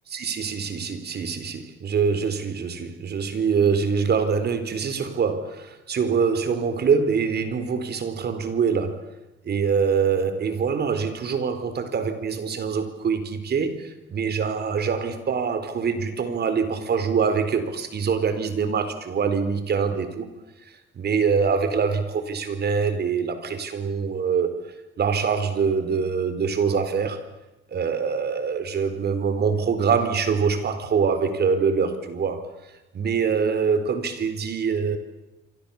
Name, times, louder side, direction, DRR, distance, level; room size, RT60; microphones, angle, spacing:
voice 1, 0.1-9.0 9.4-20.3 20.9-24.6 25.0-27.2 27.7-32.4 32.9-35.0, right 6 dB, 55° right, 10 dB, 4.3 m, -24 dB
28.0 x 24.5 x 7.2 m, 1.0 s
cardioid pair, 90°, 20 cm